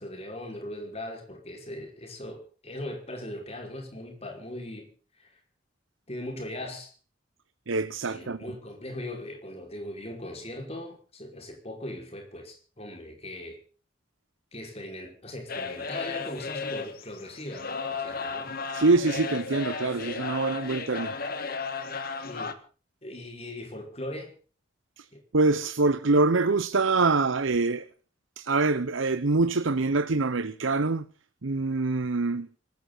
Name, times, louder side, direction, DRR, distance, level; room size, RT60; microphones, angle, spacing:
voice 1, 0.0-4.9 5.2-5.3 6.1-6.9 8.1-13.6 14.5-18.5 22.2-22.6 23.0-24.3 25.1-25.2, left 1 dB, 30° left, 5.3 m, -39 dB
voice 2, 7.7-8.4 18.7-21.1 25.0-25.1 25.3-27.8 28.4-31.1 31.4-32.6, right 3 dB, 80° right, 0.8 m, -25 dB
sound 1, 15.5-22.5, left 4 dB, 45° left, 1.7 m, -34 dB
25.0 x 14.0 x 4.1 m
head